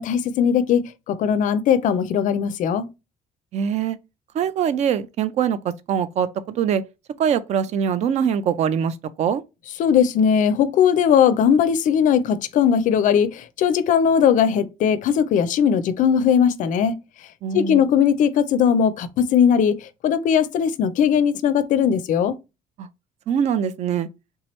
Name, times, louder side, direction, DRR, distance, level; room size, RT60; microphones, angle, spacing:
voice 1, 0.0-2.9 9.8-17.0 17.5-22.4, left 8 dB, 55° left, 0.4 m, -19 dB
voice 2, 3.5-4.0 4.3-5.6 5.9-6.8 7.2-9.4 17.4-17.8 22.8-22.9 23.3-24.1, right 8 dB, 45° right, 0.4 m, -23 dB
3.4 x 2.9 x 3.0 m
cardioid pair, 155°, 16 cm